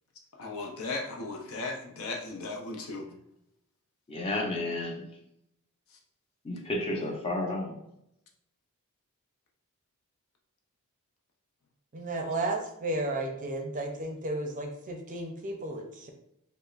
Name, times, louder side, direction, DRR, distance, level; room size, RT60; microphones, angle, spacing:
voice 1, 0.4-3.1, left 3 dB, 65° left, 1 dB, 0.6 m, -36 dB
voice 2, 4.1-5.1 6.4-7.7, left 2 dB, 25° left, 0 dB, 0.7 m, -32 dB
voice 3, 11.9-16.1, right 2 dB, 35° right, 3 dB, 0.5 m, -33 dB
5.2 x 2.0 x 2.4 m, 0.78 s
head